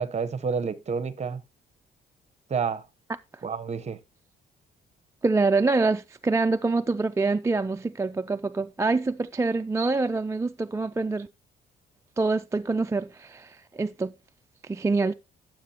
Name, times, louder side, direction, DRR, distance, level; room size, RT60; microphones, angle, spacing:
voice 1, 0.0-1.4 2.5-2.8 3.4-4.0, right 5 dB, 35° right, 0.9 m, -29 dB
voice 2, 5.2-11.3 12.2-14.1 14.6-15.1, right 3 dB, 15° right, 0.3 m, -25 dB
11.0 x 7.4 x 2.8 m
cardioid pair, 90°, 20 cm